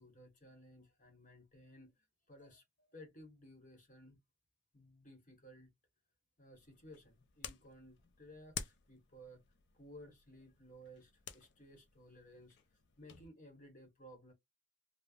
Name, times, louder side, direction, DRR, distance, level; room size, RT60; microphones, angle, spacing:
voice 1, 0.0-4.2 4.7-5.7 6.4-9.4 9.7-14.3, equal, 40° left, 1.3 m, -58 dB
sound 1, 6.5-13.3, left 8 dB, 55° left, 0.4 m, -52 dB
3.2 x 2.1 x 2.3 m
head